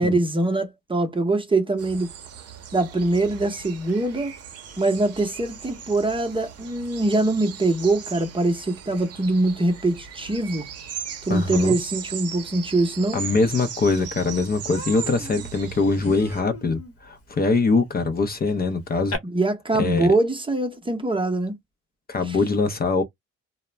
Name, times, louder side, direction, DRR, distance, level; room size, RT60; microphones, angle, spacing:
voice 1, 0.0-2.1 2.7-4.3 4.8-10.7 11.3-13.2 19.3-21.5 22.3-22.4, right 2 dB, 15° right, 0.7 m, -23 dB
Birdsong Wind Blowing, 1.8-16.4, right 8 dB, 55° right, 0.7 m, -38 dB
voice 2, 11.3-11.8 13.1-19.1 19.8-20.1 22.1-23.0, left 3 dB, 30° left, 0.6 m, -23 dB
Human voice, 13.7-13.8 14.1-14.3 14.7-19.2, left 4 dB, 50° left, 0.9 m, -39 dB
2.3 x 2.0 x 3.1 m
cardioid pair, 90°, 30 cm